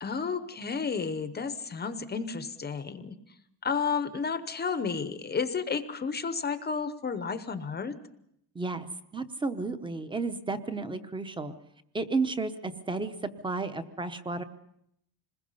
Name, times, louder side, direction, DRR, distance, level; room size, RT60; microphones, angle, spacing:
voice 1, 0.0-3.1 3.6-8.0, left 5 dB, 20° left, 10 dB, 0.8 m, -32 dB
voice 2, 8.5-8.9 9.1-11.5 11.9-14.4, right 3 dB, 10° right, 10 dB, 0.9 m, -32 dB
27.0 x 21.0 x 5.6 m, 0.75 s
cardioid pair, 175°, 44 cm